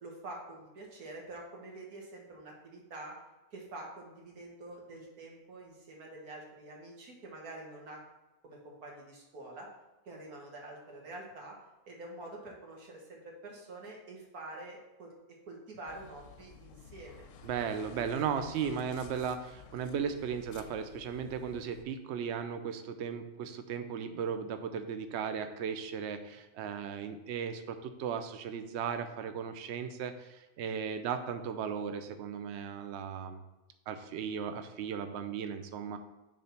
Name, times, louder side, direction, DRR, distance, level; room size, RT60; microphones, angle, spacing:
voice 1, 0.0-3.2 3.5-8.0 8.4-9.7 10.1-11.6 11.9-17.3, right 2 dB, 90° right, -1 dB, 2.0 m, -47 dB
sound 1, 15.9-21.8, left 7 dB, 70° left, 0.8 m, -53 dB
voice 2, 17.4-33.4 33.9-36.0, right 7 dB, 60° right, 9 dB, 0.8 m, -36 dB
6.5 x 3.6 x 5.7 m, 1.0 s
omnidirectional pair, 1.5 m